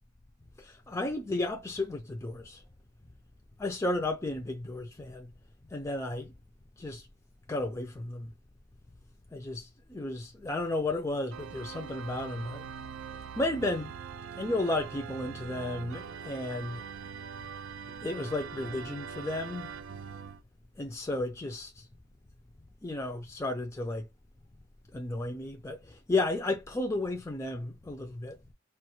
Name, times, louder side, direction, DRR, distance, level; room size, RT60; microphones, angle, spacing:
voice 1, 0.6-2.6 3.6-5.3 5.7-6.3 6.8-7.1 7.5-8.3 9.3-12.7 13.1-13.9 14.4-16.8 18.0-19.7 20.8-21.8 22.8-24.1 24.9-28.4, left 2 dB, 15° left, 0.4 m, -33 dB
Organ, 11.3-20.4, right 7 dB, 65° right, 0.4 m, -42 dB
4.6 x 2.3 x 3.0 m
head